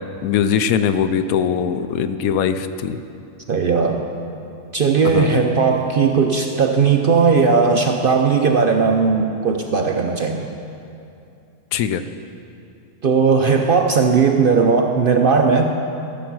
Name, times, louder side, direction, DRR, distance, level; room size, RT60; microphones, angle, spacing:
voice 1, 0.2-3.0 5.1-5.4 11.7-12.0, left 7 dB, 80° left, 11 dB, 1.0 m, -21 dB
voice 2, 3.5-4.1 4.7-10.6 13.0-15.8, right 5 dB, 55° right, 3 dB, 0.6 m, -17 dB
14.5 x 6.8 x 6.0 m, 2.6 s
omnidirectional pair, 1.5 m